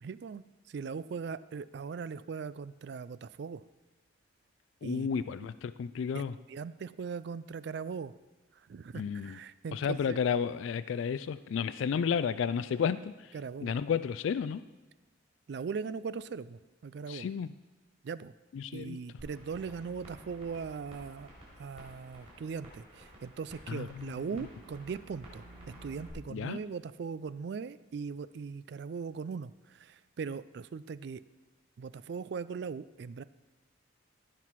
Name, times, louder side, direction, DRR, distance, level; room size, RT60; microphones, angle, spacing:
voice 1, 0.0-3.6 4.8-5.1 5.4-5.5 6.1-8.1 8.7-10.2 13.3-13.8 15.5-17.3 18.0-18.3 18.7-21.3 21.6-31.2 31.8-33.2, right 5 dB, 55° right, 16 dB, 0.3 m, -40 dB
voice 2, 4.8-6.3 8.9-9.4 9.7-13.1 13.6-14.6 17.1-17.5 18.5-19.0 23.7-24.5 26.3-26.6, left 7 dB, 70° left, 14 dB, 0.3 m, -32 dB
sound 1, 19.2-26.1, right 1 dB, 30° right, 4.0 m, -52 dB
15.5 x 5.9 x 4.6 m, 1.1 s
head